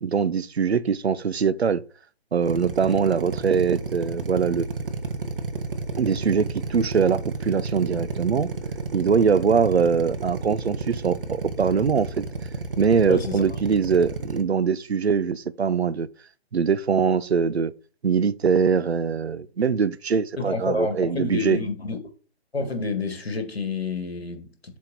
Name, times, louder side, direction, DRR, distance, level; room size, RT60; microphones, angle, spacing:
voice 1, 0.0-1.8 2.3-4.7 6.0-8.5 8.9-12.3 12.8-16.1 16.5-17.7 18.0-21.6, right 6 dB, 75° right, 0.6 m, -22 dB
Drill, 2.4-14.4, right 4 dB, 55° right, 1.1 m, -31 dB
voice 2, 13.1-13.4 20.4-22.0 22.5-24.8, left 3 dB, 70° left, 1.7 m, -29 dB
7.5 x 3.5 x 4.1 m
figure-of-eight pair, 135°, 32 cm